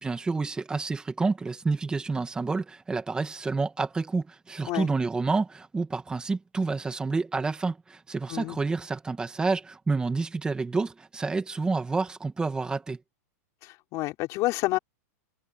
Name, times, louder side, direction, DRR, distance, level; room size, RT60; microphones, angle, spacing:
voice 1, 0.0-13.0, right 4 dB, 10° right, 2.1 m, -29 dB
voice 2, 13.6-14.8, left 19 dB, 40° left, 5.0 m, -29 dB
supercardioid pair, 145°, 9 cm